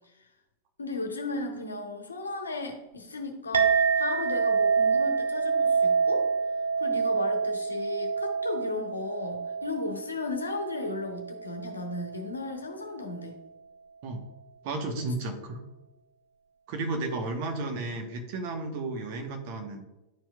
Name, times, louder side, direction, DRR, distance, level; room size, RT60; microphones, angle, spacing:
voice 1, 0.8-6.3 6.8-13.4, left 3 dB, 75° left, 4 dB, 0.9 m, -35 dB
Chink clink, 3.5-12.2, right 5 dB, 70° right, 0.5 m, -27 dB
voice 2, 14.6-15.6 16.7-19.8, right 2 dB, 45° right, 4 dB, 1.1 m, -33 dB
11.0 x 4.5 x 2.3 m, 1.0 s
figure-of-eight pair, 90°, 0 cm